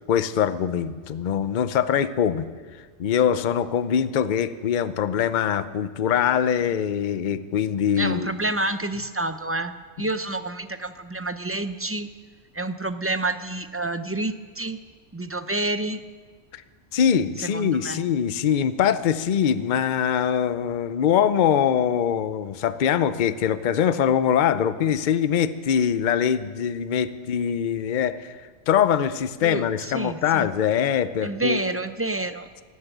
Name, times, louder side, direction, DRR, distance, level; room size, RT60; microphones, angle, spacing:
voice 1, 0.1-2.4 3.0-8.3 16.5-16.6 16.9-28.4 28.7-31.7, left 8 dB, 50° left, 13 dB, 0.7 m, -23 dB
voice 2, 7.9-12.1 12.5-14.8 15.1-16.0 17.4-18.0 29.4-30.5 31.2-32.5, right 2 dB, 20° right, 10 dB, 0.4 m, -29 dB
13.0 x 12.0 x 9.1 m, 1.5 s
omnidirectional pair, 1.2 m